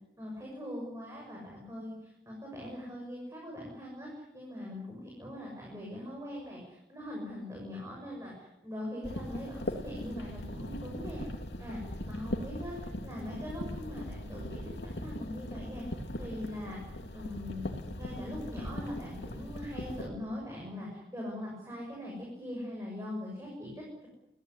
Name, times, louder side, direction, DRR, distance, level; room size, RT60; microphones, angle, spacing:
voice 1, 0.2-11.2 11.6-11.8 12.1-15.8 16.2-16.8 17.1-17.7 18.0-24.1, left 1 dB, 15° right, -2 dB, 6.8 m, -41 dB
sound 1, 9.0-20.1, left 1 dB, 80° left, 3.2 m, -40 dB
27.0 x 17.0 x 9.8 m, 0.89 s
head